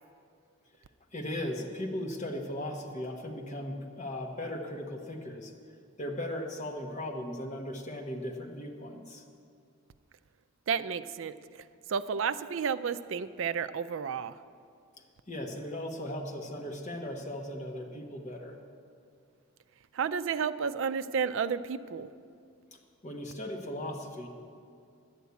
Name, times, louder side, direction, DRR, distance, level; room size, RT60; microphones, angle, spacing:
voice 1, 1.1-5.5 6.0-9.2 15.3-18.6 22.7-24.3, left 1 dB, 30° left, 2 dB, 1.2 m, -37 dB
voice 2, 10.7-11.3 11.9-14.3 19.9-22.1, right 6 dB, 60° right, 13 dB, 0.4 m, -31 dB
11.0 x 8.2 x 8.3 m, 2.4 s
head